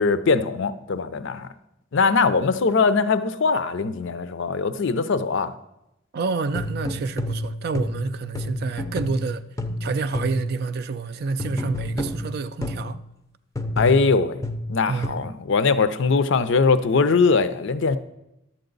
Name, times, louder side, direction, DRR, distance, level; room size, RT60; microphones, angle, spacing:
voice 1, 0.0-1.5 1.9-5.5 13.8-14.4 14.7-18.0, left 4 dB, 60° left, 0.5 m, -21 dB
voice 2, 6.1-9.4 9.8-13.0 14.9-15.2, right 4 dB, 50° right, 0.4 m, -28 dB
sound 1, 6.5-10.6 11.4-13.0 13.6-15.1, left 1 dB, 15° left, 0.5 m, -29 dB
11.5 x 7.9 x 3.9 m
head